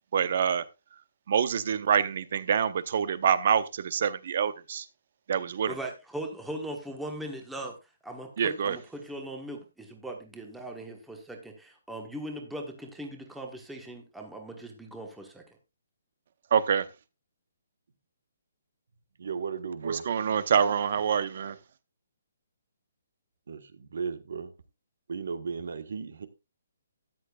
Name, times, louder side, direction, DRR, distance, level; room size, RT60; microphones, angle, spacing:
voice 1, 0.1-0.6 1.3-4.9 5.3-5.7 8.4-8.8 16.5-16.9 19.8-21.6, right 7 dB, 40° right, 0.8 m, -26 dB
voice 2, 5.7-7.7 8.0-15.4, right 1 dB, ahead, 1.3 m, -39 dB
voice 3, 19.2-20.1 23.5-24.5 25.1-26.3, right 5 dB, 60° right, 1.3 m, -35 dB
13.0 x 10.0 x 2.4 m
hypercardioid pair, 175°, 0 cm